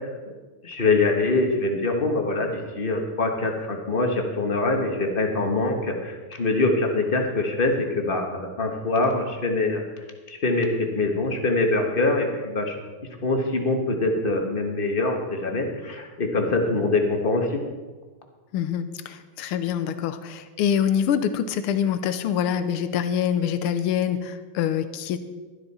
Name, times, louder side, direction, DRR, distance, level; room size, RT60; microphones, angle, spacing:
voice 1, 0.6-9.8 10.3-12.7 13.2-17.6, left 2 dB, 30° left, 3 dB, 1.2 m, -24 dB
voice 2, 18.5-25.2, left 9 dB, 85° left, 11 dB, 1.6 m, -25 dB
12.5 x 12.0 x 4.2 m, 1.3 s
omnidirectional pair, 2.4 m